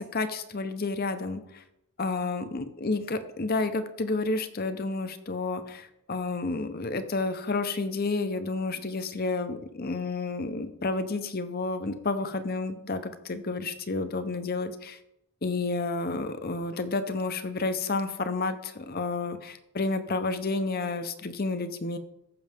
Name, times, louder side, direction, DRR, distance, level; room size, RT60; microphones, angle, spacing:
voice 1, 0.0-1.6 2.0-15.0 15.4-22.0, left 3 dB, 45° left, 10 dB, 0.7 m, -30 dB
14.5 x 6.3 x 3.5 m, 0.82 s
head